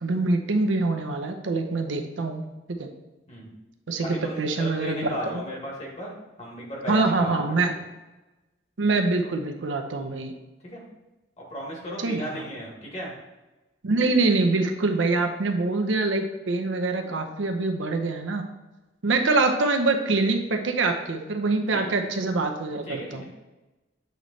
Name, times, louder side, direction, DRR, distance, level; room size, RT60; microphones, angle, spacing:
voice 1, 0.0-2.9 3.9-5.0 5.3-5.4 6.9-7.7 8.8-10.3 12.0-12.4 13.8-18.5 19.0-23.2, right 3 dB, 85° right, 4 dB, 0.7 m, -25 dB
voice 2, 4.0-7.3 10.6-10.8 11.5-13.1 21.7-21.8 22.9-23.3, equal, 35° left, -3 dB, 1.8 m, -35 dB
8.0 x 3.1 x 4.0 m, 1.1 s
head